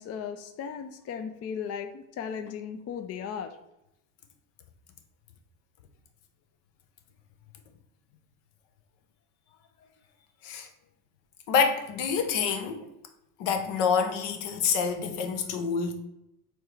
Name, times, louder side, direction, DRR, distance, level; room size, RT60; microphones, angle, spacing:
voice 1, 0.0-3.5, left 7 dB, 35° left, 0.4 m, -36 dB
voice 2, 11.5-12.9 13.4-15.9, left 6 dB, 70° left, 0.8 m, -27 dB
4.4 x 3.1 x 3.3 m
supercardioid pair, 85°, 46 cm